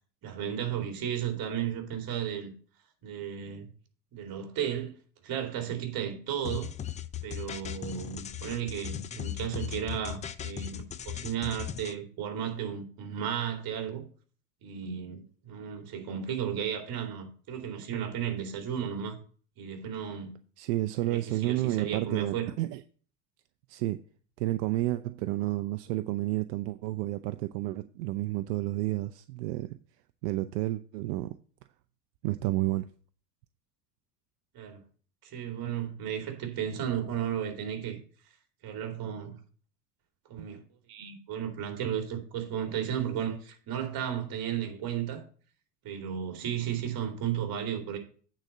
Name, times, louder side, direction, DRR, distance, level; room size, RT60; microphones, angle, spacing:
voice 1, 0.2-2.5 3.0-3.7 4.1-4.9 5.2-6.7 7.2-10.8 11.1-14.1 14.6-19.2 19.6-20.4 21.0-22.5 34.5-34.8 35.2-38.0 38.6-39.4 40.3-40.6 40.9-45.2 45.8-48.0, right 9 dB, 45° right, 2.7 m, -34 dB
sound 1, 6.4-11.9, left 10 dB, 15° left, 0.3 m, -37 dB
voice 2, 20.6-22.8 23.7-24.0 24.4-29.7 30.2-31.3 32.2-32.9, right 17 dB, 80° right, 0.7 m, -30 dB
8.9 x 4.2 x 6.5 m
supercardioid pair, 105°, 48 cm